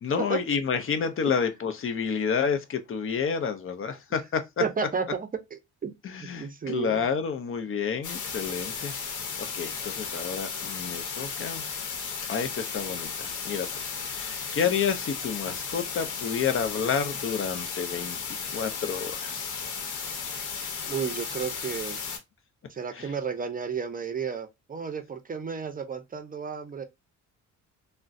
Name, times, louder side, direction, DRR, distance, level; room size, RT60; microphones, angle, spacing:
voice 1, 0.0-4.6 6.0-8.9 9.4-11.6 12.3-18.2 18.5-19.6 22.9-23.1, left 6 dB, 45° left, 0.6 m, -30 dB
voice 2, 4.6-5.9 6.4-7.1 20.5-22.0 22.7-26.8, right 6 dB, 30° right, 0.5 m, -32 dB
sound 1, 8.0-22.2, left 6 dB, 80° left, 0.9 m, -35 dB
3.6 x 2.1 x 2.5 m
cardioid pair, 90°, 30 cm